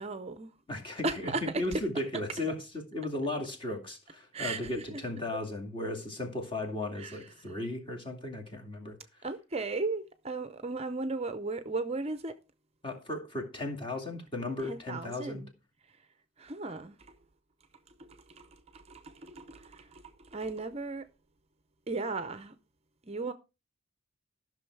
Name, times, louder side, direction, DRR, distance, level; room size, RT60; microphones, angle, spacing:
voice 1, 0.0-0.5 1.0-1.4 1.7-1.8 4.3-4.8 7.0-7.2 9.2-12.3 14.7-15.5 16.4-17.0 18.0-18.1 18.4-18.5 18.7-20.0 20.3-21.0 21.9-22.5 23.1-23.3, right 3 dB, 30° right, 0.6 m, -35 dB
voice 2, 0.7-2.6 2.9-9.0 12.8-15.4, left 2 dB, 25° left, 2.4 m, -36 dB
14.0 x 6.3 x 4.6 m
head